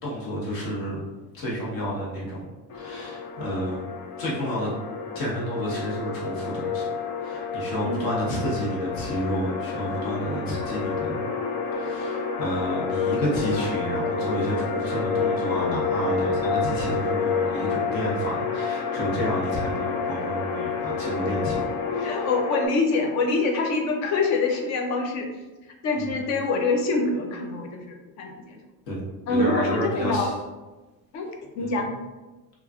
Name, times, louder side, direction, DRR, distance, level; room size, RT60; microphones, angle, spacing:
voice 1, 0.0-1.0 1.3-2.4 2.7-3.8 4.2-4.7 5.1-6.9 7.2-11.2 11.7-21.6 21.9-22.3 26.0-26.3 28.9-29.0 29.3-30.3 31.6-31.9, equal, 60° left, -4 dB, 1.2 m, -30 dB
sound 1, 2.7-22.7, left 5 dB, 85° left, 0.7 m, -29 dB
voice 2, 22.0-25.3 25.8-28.6 29.3-30.3 31.1-31.3 31.5-31.9, left 3 dB, 45° left, 2 dB, 0.5 m, -25 dB
3.0 x 2.4 x 2.3 m, 1.2 s
cardioid pair, 145°, 40 cm